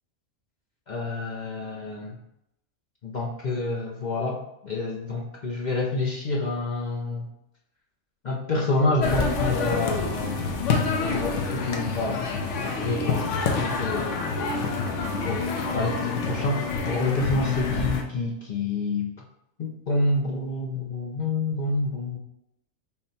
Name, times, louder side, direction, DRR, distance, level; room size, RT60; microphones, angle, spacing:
voice 1, 0.9-2.2 3.0-7.3 8.2-10.4 11.1-12.3 12.6-13.3 13.6-14.1 15.2-19.1 19.6-22.2, left 2 dB, 50° left, -2 dB, 0.5 m, -28 dB
sound 1, 9.0-18.0, left 4 dB, 65° left, 1.0 m, -27 dB
5.8 x 2.1 x 4.1 m, 0.81 s
omnidirectional pair, 1.4 m